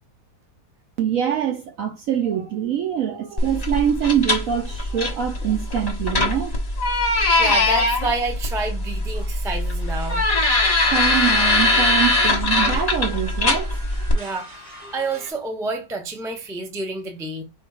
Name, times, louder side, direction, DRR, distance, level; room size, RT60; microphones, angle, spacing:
voice 1, 1.0-6.5 9.2-9.3 10.9-13.8, right 9 dB, 70° right, 0.8 m, -24 dB
sound 1, 3.4-14.1, left 2 dB, 30° left, 0.8 m, -21 dB
voice 2, 7.1-10.2 14.1-14.5 14.9-17.4, right 3 dB, 5° right, 0.3 m, -28 dB
sound 2, 9.8-15.3, right 2 dB, 45° right, 2.1 m, -42 dB
4.5 x 2.4 x 4.8 m
omnidirectional pair, 1.9 m